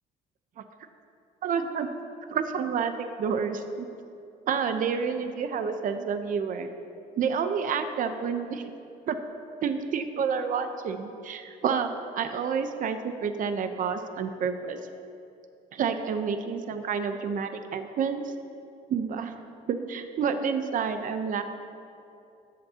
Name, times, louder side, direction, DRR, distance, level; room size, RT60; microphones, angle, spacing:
voice 1, 1.4-1.9 2.3-3.9 4.5-6.7 7.2-8.6 9.1-9.2 9.6-11.9 12.2-14.8 15.7-18.2 18.9-19.3 19.7-21.4, right 6 dB, 50° right, 8 dB, 0.8 m, -29 dB
20.0 x 8.0 x 2.9 m, 2.6 s
cardioid pair, 110°, 17 cm